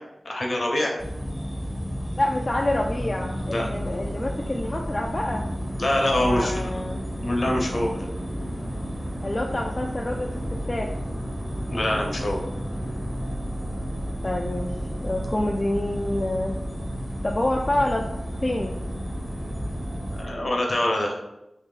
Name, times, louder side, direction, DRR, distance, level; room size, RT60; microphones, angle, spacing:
voice 1, 0.2-0.9 3.5-3.7 5.8-6.7 7.2-8.0 11.7-12.4 20.1-21.1, left 1 dB, 60° left, 0 dB, 0.8 m, -24 dB
sound 1, 1.0-20.2, equal, ahead, 0.6 m, -32 dB
voice 2, 2.1-5.4 6.2-7.1 9.2-10.3 10.7-10.9 14.2-16.6 17.2-18.1 18.4-18.8, left 1 dB, 35° left, 0 dB, 0.3 m, -27 dB
sound 2, 3.3-20.5, right 1 dB, 80° right, 0.7 m, -38 dB
3.1 x 2.7 x 3.8 m, 0.90 s
wide cardioid pair, 80°, 0 cm